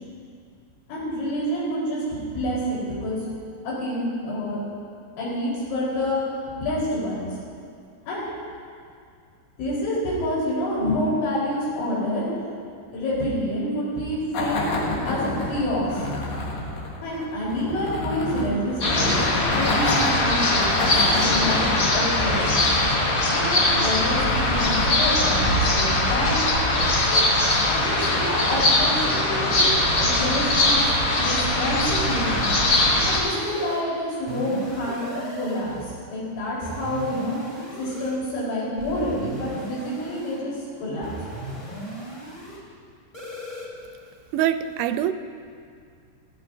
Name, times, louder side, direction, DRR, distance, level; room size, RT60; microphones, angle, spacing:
voice 1, 0.9-2.0 2.3-3.2 3.6-4.6 5.2-7.3 8.1-8.3 9.6-12.5 12.9-16.3 17.0-19.1 19.5-21.6 21.9-22.7 23.3-26.5 27.1-27.2 27.6-32.4 33.1-37.4 37.8-41.1, left 1 dB, 90° left, -7 dB, 6.4 m, -28 dB
sound 1, 14.3-26.5, left 2 dB, 75° left, 3.4 m, -30 dB
sound 2, 18.8-33.2, left 1 dB, 40° left, 3.3 m, -21 dB
sound 3, 27.0-29.0 29.5-31.4 31.8-33.8 34.3-35.8 36.6-38.2 38.8-40.4 41.0-42.6 43.1-43.7, right 1 dB, 15° left, 1.4 m, -38 dB
voice 2, 44.3-45.1, right 11 dB, 85° right, 10 dB, 2.9 m, -23 dB
17.5 x 15.0 x 2.6 m, 2.2 s
omnidirectional pair, 5.2 m